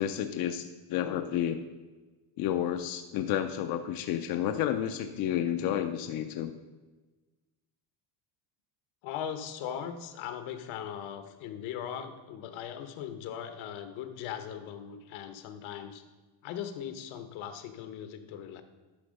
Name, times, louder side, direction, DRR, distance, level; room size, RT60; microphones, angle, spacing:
voice 1, 0.0-1.6 2.4-6.5, left 10 dB, 45° left, 7 dB, 0.5 m, -31 dB
voice 2, 9.0-16.0 16.4-18.6, left 9 dB, 70° left, 9 dB, 1.1 m, -39 dB
11.0 x 4.4 x 6.3 m, 1.2 s
cardioid pair, 170°, 50 cm